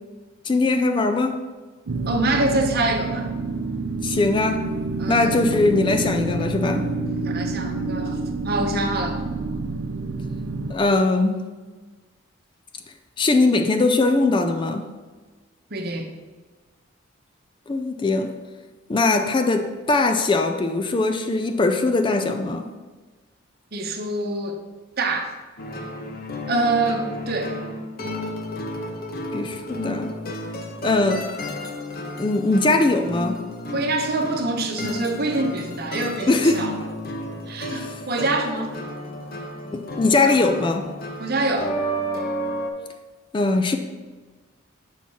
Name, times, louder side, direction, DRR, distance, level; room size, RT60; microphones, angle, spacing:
voice 1, 0.4-1.4 4.0-4.7 5.1-6.9 10.7-11.4 13.2-14.9 17.7-18.3 18.9-22.7 29.3-30.1 30.8-31.3 32.2-33.4 36.3-36.7 37.7-38.0 39.7-40.9 43.3-43.8, left 3 dB, 25° left, 0.4 m, -21 dB
sound 1, 1.9-10.7, right 3 dB, 80° right, 0.5 m, -28 dB
voice 2, 2.1-3.3 5.0-5.3 7.2-8.2 8.4-9.2 15.7-16.1 23.7-24.6 25.0-25.3 26.5-27.6 33.7-36.8 37.5-38.7 40.1-40.4 41.2-41.7, right 2 dB, 50° right, 0.8 m, -25 dB
sound 2, 25.6-42.7, equal, 50° left, 0.8 m, -32 dB
5.7 x 4.2 x 6.2 m
head